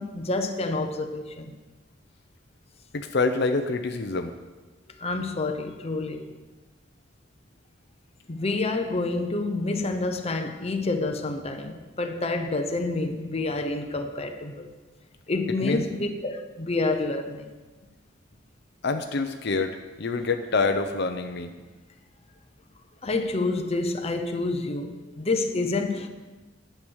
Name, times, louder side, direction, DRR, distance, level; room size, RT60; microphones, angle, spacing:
voice 1, 0.0-1.6 5.0-6.3 8.3-14.7 15.3-17.5 23.0-26.1, left 2 dB, 30° left, 0.8 m, -28 dB
voice 2, 2.9-4.3 15.6-15.8 18.8-19.7 20.0-21.5, left 3 dB, 60° left, 0.7 m, -26 dB
10.5 x 7.9 x 6.3 m
head